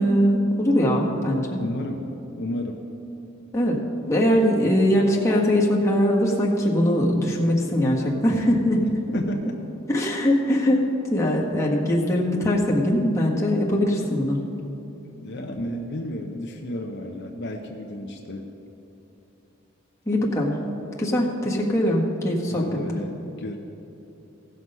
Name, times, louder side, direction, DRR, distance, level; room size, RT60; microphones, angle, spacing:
voice 1, 0.0-1.6 3.5-3.8 4.1-8.8 9.9-10.8 11.1-14.4 20.1-20.6 21.0-22.6, equal, 15° left, -3 dB, 1.4 m, -21 dB
voice 2, 1.6-2.1 2.4-2.9 9.1-9.6 15.0-18.5 22.5-23.6, left 1 dB, 55° left, 2 dB, 0.7 m, -32 dB
16.5 x 6.2 x 5.5 m, 3.0 s
head